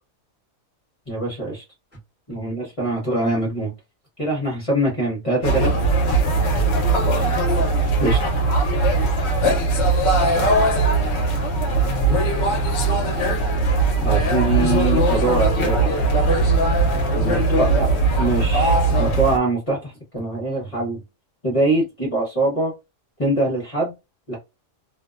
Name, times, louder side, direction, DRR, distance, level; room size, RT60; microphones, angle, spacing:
voice 1, 1.1-1.6 2.3-3.7 4.2-5.7 8.0-8.2 10.3-10.7 14.0-15.9 17.1-17.9 18.2-21.0 21.4-22.7 23.2-23.9 24.3-24.4, right 2 dB, 30° left, -3 dB, 0.8 m, -23 dB
sound 1, 5.4-19.4, right 2 dB, 65° left, 0.8 m, -19 dB
voice 2, 6.3-7.1 8.9-9.2 12.0-12.3 16.9-17.3, equal, 10° right, -3 dB, 0.8 m, -39 dB
2.5 x 2.1 x 2.3 m, 0.24 s
omnidirectional pair, 1.3 m